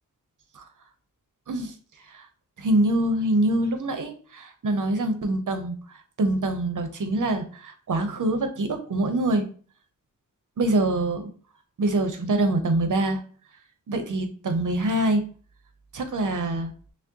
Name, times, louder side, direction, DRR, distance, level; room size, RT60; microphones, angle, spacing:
voice 1, 2.6-5.8 6.2-9.5 10.6-11.3 11.8-13.2 13.9-15.3 15.9-16.7, right 1 dB, 65° right, 7 dB, 0.8 m, -24 dB
6.0 x 2.1 x 2.7 m, 0.42 s
wide cardioid pair, 85°, 34 cm